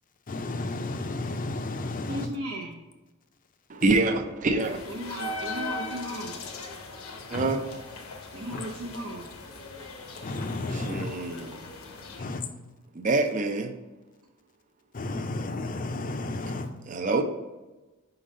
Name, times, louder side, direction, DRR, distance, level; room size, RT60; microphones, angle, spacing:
voice 1, 0.3-2.3 7.3-7.5 10.2-11.1 12.2-12.4 14.9-16.7, left 2 dB, 40° left, 6 dB, 0.5 m, -32 dB
voice 2, 2.1-2.8 4.9-6.4 8.3-9.3 12.2-12.4, right 1 dB, 75° right, -3 dB, 0.8 m, -36 dB
voice 3, 3.7-4.8 7.3-7.6 10.7-11.6 12.9-13.7 16.9-17.2, right 2 dB, 35° right, 6 dB, 0.4 m, -26 dB
sound 1, 4.6-12.2, left 2 dB, 70° left, 0.9 m, -39 dB
5.0 x 3.9 x 5.1 m, 1.1 s
head